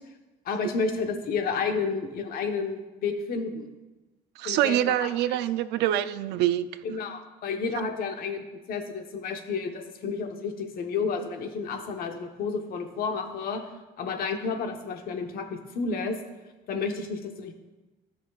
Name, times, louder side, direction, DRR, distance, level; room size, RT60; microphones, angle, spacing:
voice 1, 0.4-3.7 4.4-5.1 6.8-13.6 14.0-16.2 16.7-17.5, left 5 dB, 60° left, 5 dB, 1.1 m, -31 dB
voice 2, 4.4-6.7, right 12 dB, 85° right, 13 dB, 0.5 m, -25 dB
16.0 x 6.2 x 2.4 m, 1.1 s
cardioid pair, 110°, 17 cm